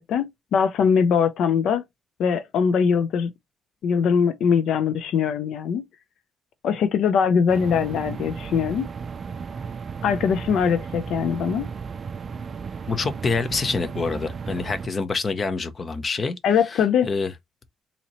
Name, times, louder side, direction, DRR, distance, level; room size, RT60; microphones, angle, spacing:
voice 1, 0.1-1.8 2.2-3.3 3.8-5.8 6.6-8.9 10.0-11.7 16.4-17.1, left 6 dB, 75° left, 0.4 m, -21 dB
sound 1, 7.5-14.9, right 5 dB, 45° right, 0.3 m, -34 dB
voice 2, 12.9-16.4 16.6-17.3, left 4 dB, 40° left, 0.7 m, -26 dB
4.0 x 2.8 x 2.9 m
cardioid pair, 90°, 0 cm